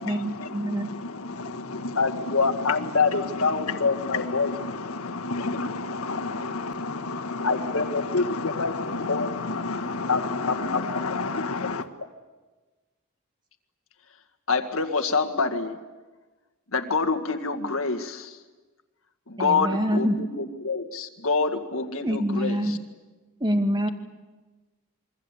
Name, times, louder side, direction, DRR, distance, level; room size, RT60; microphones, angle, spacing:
voice 1, 0.0-0.9 19.4-20.2 22.0-22.8 23.4-23.9, equal, 20° right, 5 dB, 2.0 m, -26 dB
voice 2, 1.0-2.0 3.7-7.7 8.0-11.8, left 3 dB, 85° left, 5 dB, 1.5 m, -31 dB
voice 3, 2.0-4.5 7.4-9.3 10.1-11.5 14.5-15.8 16.7-18.3 19.3-22.8, left 4 dB, 65° left, 7 dB, 2.0 m, -26 dB
28.0 x 22.5 x 8.5 m, 1.3 s
head